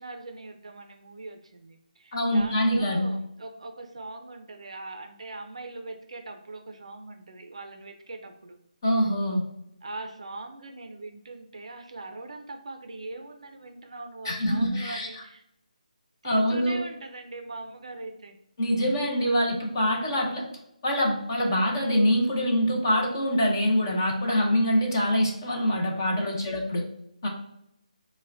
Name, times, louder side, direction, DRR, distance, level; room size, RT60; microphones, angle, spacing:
voice 1, 0.0-8.6 9.8-15.4 16.2-18.4 26.3-26.5, right 2 dB, 50° right, 5 dB, 0.4 m, -41 dB
voice 2, 2.1-3.1 8.8-9.4 14.2-15.2 16.2-16.8 18.6-20.5 20.8-26.8 27.2-27.3, equal, 25° left, 0 dB, 0.6 m, -24 dB
5.3 x 2.1 x 2.5 m, 0.78 s
hypercardioid pair, 175°, 4 cm